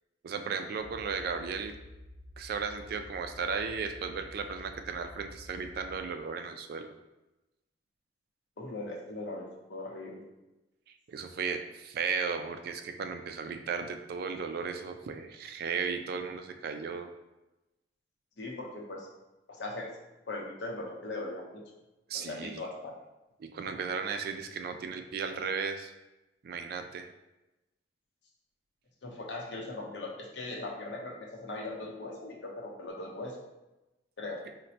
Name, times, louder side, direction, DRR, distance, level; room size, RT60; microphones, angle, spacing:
voice 1, 0.2-1.7 2.4-6.9 11.1-17.1 22.1-22.6 23.4-25.9 26.4-27.1, right 5 dB, 55° right, 7 dB, 0.3 m, -35 dB
sound 1, 0.8-6.0, left 1 dB, ahead, 0.9 m, -50 dB
voice 2, 8.6-10.2 18.4-19.1 19.5-19.9 20.3-21.6 22.1-22.9 29.0-33.4 34.2-34.4, left 2 dB, 70° left, -1 dB, 0.7 m, -39 dB
4.1 x 2.1 x 2.7 m, 1.0 s
head